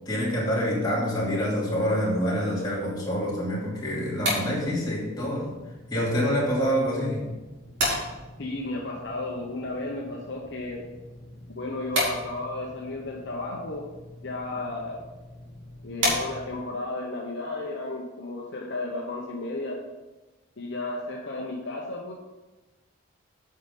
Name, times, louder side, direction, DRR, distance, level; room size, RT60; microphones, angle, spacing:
voice 1, 0.1-5.5 5.9-7.3, equal, 20° left, -7 dB, 2.8 m, -26 dB
light switch, 3.9-16.7, equal, 65° right, 2.7 m, -35 dB
voice 2, 8.4-10.8 11.6-13.8 14.2-15.0 15.8-19.8 20.6-22.1, left 2 dB, 60° left, -1 dB, 1.0 m, -33 dB
8.6 x 5.6 x 5.4 m, 1.1 s
head